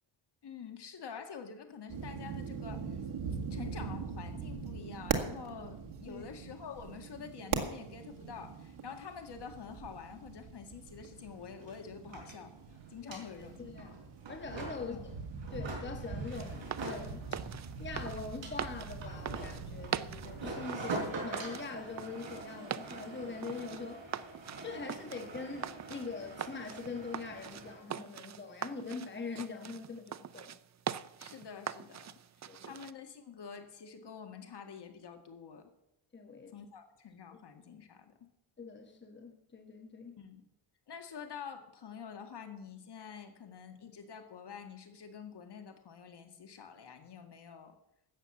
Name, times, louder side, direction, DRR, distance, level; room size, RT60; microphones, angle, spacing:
voice 1, 0.4-2.9 3.5-12.5 12.9-13.9 14.8-15.1 31.2-32.1 32.6-35.7 36.5-38.1 40.2-40.4 40.9-47.7, left 6 dB, 50° left, 2.0 m, -47 dB
sound 1, 1.9-20.5, right 5 dB, 80° right, 2.0 m, -42 dB
sound 2, 10.9-11.0 11.2-27.8, right 3 dB, 60° right, 5.2 m, -45 dB
voice 2, 13.0-14.0 14.3-15.1 15.5-17.5 17.8-24.1 24.6-30.6 32.5-32.8 36.1-36.5 37.3-37.4 38.6-40.2, left 4 dB, 20° left, 1.4 m, -43 dB
sound 3, 16.3-32.9, right 9 dB, 35° right, 0.5 m, -43 dB
13.0 x 8.3 x 7.2 m
cardioid pair, 130°, 50 cm